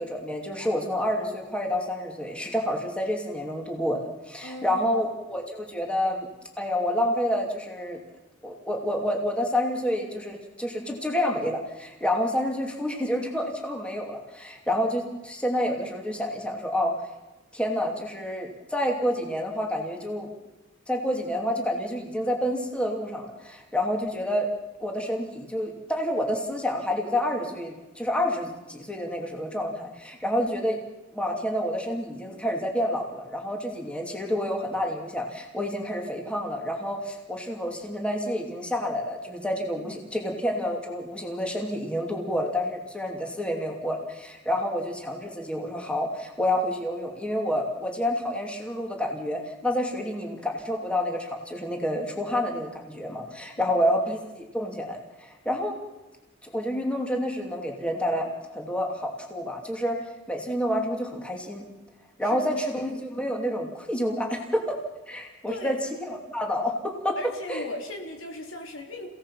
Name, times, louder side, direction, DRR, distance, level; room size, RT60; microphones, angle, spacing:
voice 1, 0.0-6.3 6.6-8.0 8.4-17.0 17.5-20.3 20.9-24.5 24.8-30.8 31.1-55.8 56.4-60.0 60.3-61.6 62.2-64.8 65.1-65.8 66.1-67.2 67.5-67.6, equal, 5° left, 1 dB, 2.7 m, -29 dB
voice 2, 4.4-5.0 39.8-39.9 53.5-54.0 62.2-62.5 65.5-65.8 67.2-69.1, left 1 dB, 80° left, 2 dB, 3.6 m, -38 dB
29.5 x 17.0 x 5.8 m, 1.1 s
head